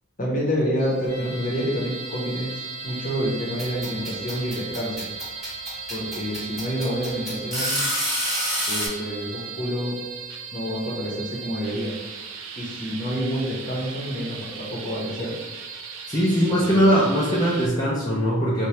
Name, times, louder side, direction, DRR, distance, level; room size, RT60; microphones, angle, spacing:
voice 1, 0.2-5.1 5.9-7.8 8.7-10.0 10.5-11.9 12.6-15.3 16.3-16.8, equal, 40° left, -4 dB, 0.7 m, -28 dB
sound 1, 0.8-17.7, right 6 dB, 85° right, 0.4 m, -38 dB
sound 2, 1.1-9.8, left 3 dB, 75° left, 0.9 m, -42 dB
sound 3, 3.6-8.9, equal, ahead, 0.8 m, -27 dB
voice 2, 16.1-18.7, equal, 20° left, -8 dB, 0.4 m, -20 dB
2.8 x 2.2 x 3.1 m, 1.2 s
head